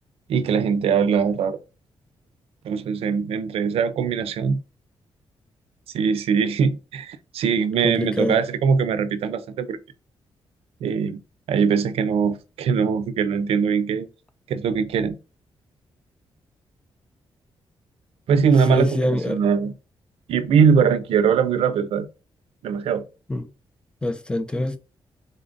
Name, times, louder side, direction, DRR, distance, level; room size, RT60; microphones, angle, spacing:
voice 1, 0.3-1.6 2.6-4.6 5.9-9.8 10.8-11.2 11.5-14.1 14.5-15.2 18.3-19.7 20.3-22.1 22.6-23.0, right 6 dB, 80° right, 0.5 m, -21 dB
voice 2, 7.8-8.4 18.7-19.4 23.3-23.5 24.0-24.8, left 1 dB, 10° left, 0.4 m, -24 dB
3.9 x 2.5 x 3.7 m
wide cardioid pair, 175°, 10 cm